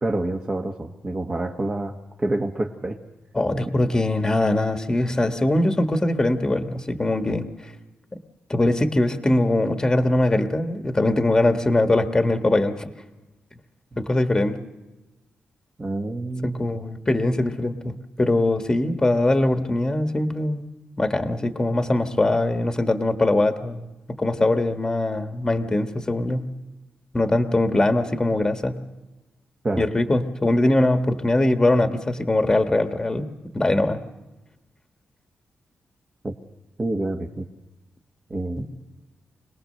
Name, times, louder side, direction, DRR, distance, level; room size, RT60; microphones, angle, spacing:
voice 1, 0.0-3.0 15.8-16.7 29.6-29.9 36.2-36.3 36.8-37.5 38.3-38.8, right 2 dB, 25° right, 2 dB, 1.3 m, -27 dB
voice 2, 3.3-7.7 8.5-12.9 14.0-14.6 16.4-20.7 21.0-26.5 27.1-28.8 29.8-33.3 33.5-34.0 38.6-38.8, left 2 dB, 15° left, 7 dB, 1.4 m, -22 dB
25.5 x 19.5 x 6.6 m, 1.1 s
wide cardioid pair, 145°, 4 cm